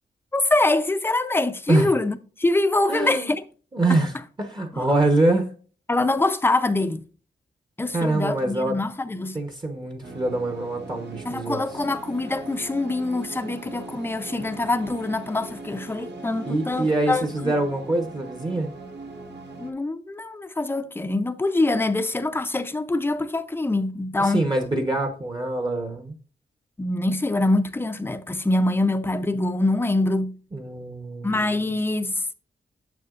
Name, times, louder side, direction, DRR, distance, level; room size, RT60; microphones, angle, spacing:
voice 1, 0.3-3.4 4.7-4.8 5.9-7.0 7.8-9.4 11.3-17.5 19.6-24.4 26.8-30.3 31.2-32.2, left 2 dB, 10° left, 0.5 m, -24 dB
voice 2, 2.9-3.3 3.7-5.5 7.9-8.8 9.3-11.6 16.5-18.7 24.2-26.2 30.5-31.7, right 2 dB, 25° right, 0.9 m, -24 dB
sound 1, 10.0-19.7, right 2 dB, 85° right, 1.4 m, -40 dB
9.3 x 7.0 x 2.4 m
wide cardioid pair, 160°, 18 cm